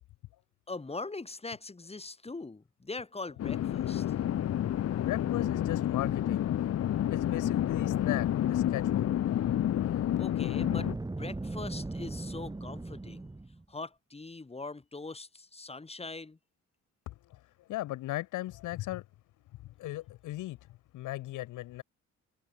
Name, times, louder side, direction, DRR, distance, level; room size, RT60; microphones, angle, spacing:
voice 1, 0.7-4.2 10.2-13.3 13.7-16.4, left 3 dB, 20° left, 3.5 m, -42 dB
sound 1, 3.4-10.9, left 11 dB, 55° left, 0.9 m, -29 dB
voice 2, 4.9-6.5 7.1-9.1 17.1-17.2 17.7-19.0 19.8-20.6 20.9-21.8, left 16 dB, 85° left, 1.2 m, -36 dB
Boom, 10.6-13.6, right 2 dB, 15° right, 2.0 m, -38 dB
cardioid pair, 90°, 30 cm